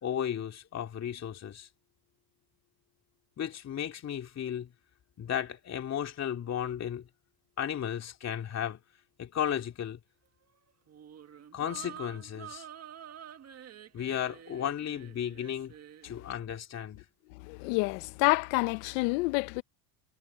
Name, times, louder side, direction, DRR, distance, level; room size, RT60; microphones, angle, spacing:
voice 1, 0.0-1.7 3.4-4.7 5.2-7.1 7.6-8.8 9.2-10.0 11.5-12.7 13.9-15.7 16.0-17.0, left 9 dB, 35° left, 2.7 m, -34 dB
sound 1, 10.9-16.1, right 10 dB, 30° right, 1.7 m, -48 dB
voice 2, 17.3-19.6, left 25 dB, 80° left, 1.0 m, -28 dB
supercardioid pair, 125°, 47 cm